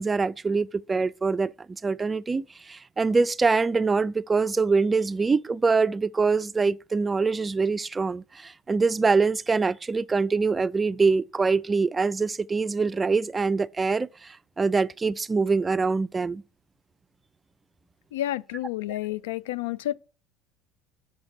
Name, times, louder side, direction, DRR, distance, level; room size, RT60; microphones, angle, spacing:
voice 1, 0.0-16.4, right 4 dB, 25° right, 0.3 m, -24 dB
voice 2, 18.1-19.9, left 14 dB, 85° left, 0.3 m, -30 dB
6.4 x 5.8 x 4.1 m
hypercardioid pair, 80°, 0 cm